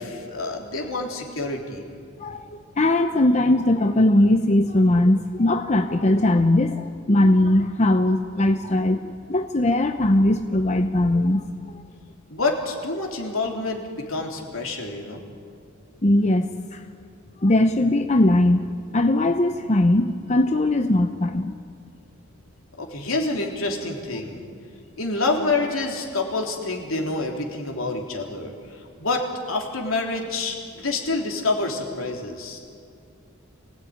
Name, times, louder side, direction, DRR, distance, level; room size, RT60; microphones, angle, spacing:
voice 1, 0.0-1.9 12.3-15.2 22.8-24.4 25.0-32.6, left 3 dB, 75° left, 1 dB, 3.5 m, -27 dB
voice 2, 2.2-9.0 9.3-11.8 16.0-16.8 17.4-18.6 18.9-21.5, left 1 dB, 35° left, 7 dB, 0.8 m, -20 dB
25.0 x 17.0 x 9.5 m, 2.2 s
head